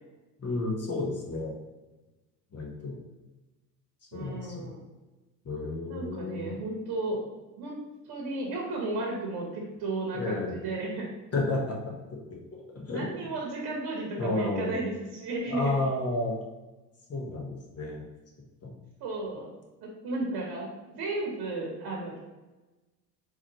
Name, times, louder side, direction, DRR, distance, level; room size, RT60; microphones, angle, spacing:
voice 1, 0.4-1.5 2.5-3.0 4.1-4.7 5.4-6.5 10.1-10.6 11.3-12.2 12.5-13.1 14.1-14.8 15.5-16.3 17.1-18.0 18.6-18.7, left 2 dB, 30° left, -1 dB, 1.0 m, -31 dB
voice 2, 4.1-4.8 5.9-7.2 7.6-7.8 8.0-11.1 12.9-15.7 19.0-19.5 19.8-22.2, right 2 dB, 50° right, -1 dB, 1.1 m, -34 dB
3.8 x 3.1 x 2.9 m, 1.1 s
hypercardioid pair, 65°, 48 cm